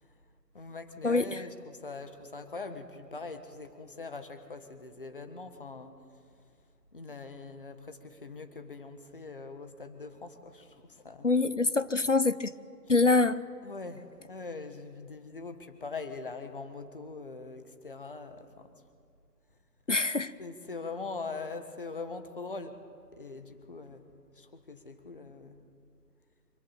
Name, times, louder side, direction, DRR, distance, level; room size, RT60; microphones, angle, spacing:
voice 1, 0.5-6.0 6.9-11.3 12.9-13.0 13.6-18.7 20.4-22.8 23.1-24.0 24.4-25.6, left 3 dB, 30° left, 8 dB, 1.6 m, -42 dB
voice 2, 11.2-12.5 12.9-13.4 19.9-20.3, left 3 dB, 50° left, 15 dB, 0.7 m, -25 dB
26.0 x 24.0 x 8.9 m, 2.2 s
figure-of-eight pair, 160°, 49 cm